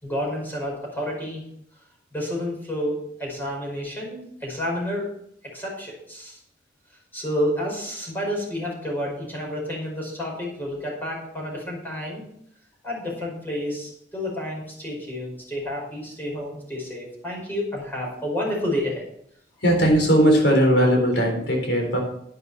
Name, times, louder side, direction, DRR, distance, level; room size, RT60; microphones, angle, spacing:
voice 1, 0.0-1.4 2.1-5.1 5.5-6.4 7.1-12.2 12.8-19.0, left 1 dB, 10° left, -3 dB, 5.0 m, -30 dB
voice 2, 19.6-22.0, equal, 75° left, 1 dB, 4.1 m, -18 dB
11.5 x 10.0 x 4.2 m, 0.71 s
head